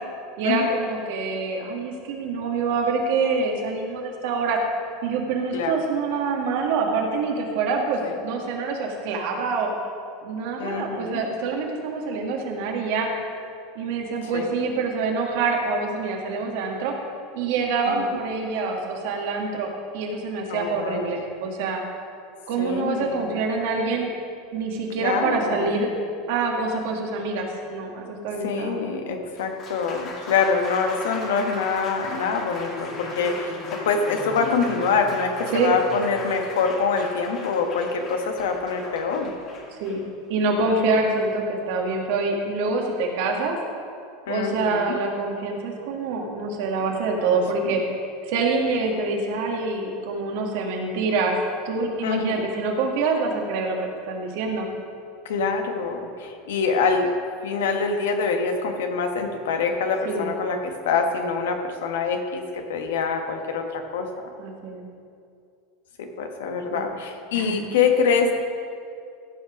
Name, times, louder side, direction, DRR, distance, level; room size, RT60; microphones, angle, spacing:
voice 1, 0.4-4.6 5.0-9.7 10.2-13.1 13.8-16.9 17.3-21.8 22.5-24.1 24.5-25.9 26.3-28.8 35.5-35.7 39.8-40.0 40.3-43.6 44.3-47.8 48.2-51.4 51.7-54.7 60.1-60.4 64.4-64.9 66.7-66.8 67.3-67.5, right 4 dB, 70° right, 1 dB, 1.8 m, -26 dB
voice 2, 10.6-11.2 14.3-14.5 17.9-18.2 20.5-21.2 22.6-23.3 25.0-25.8 28.4-39.3 44.3-44.9 47.6-47.7 52.0-52.4 55.2-57.1 57.4-64.3 66.0-68.3, left 5 dB, 80° left, 5 dB, 1.2 m, -25 dB
Applause, 29.2-41.4, left 3 dB, 45° left, 2.0 m, -37 dB
14.5 x 5.7 x 5.1 m, 2.4 s
hypercardioid pair, 105°, 0 cm